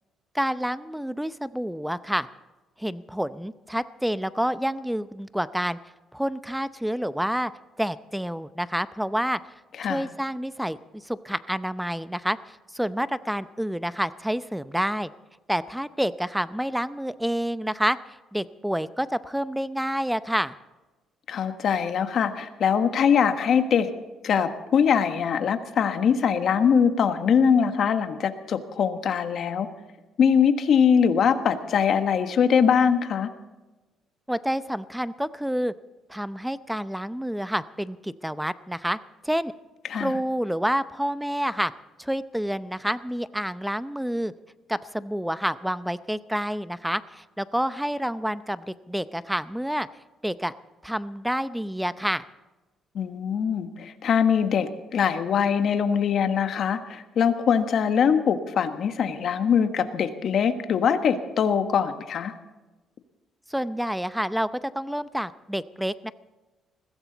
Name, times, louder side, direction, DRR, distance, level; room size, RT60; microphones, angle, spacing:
voice 1, 0.3-2.3 2.8-5.8 6.1-7.5 7.8-9.4 9.8-15.1 15.5-18.0 18.3-20.5 34.3-35.7 36.1-39.0 39.2-39.5 39.9-41.7 42.0-44.3 44.7-49.9 50.2-50.5 50.8-52.2 63.5-66.1, equal, 5° right, 14 dB, 0.6 m, -28 dB
voice 2, 21.3-23.9 24.2-29.7 30.2-33.3 39.9-40.1 52.9-62.3, left 7 dB, 60° left, 8 dB, 1.4 m, -22 dB
21.0 x 15.5 x 4.1 m, 1.1 s
cardioid pair, 95°, 0 cm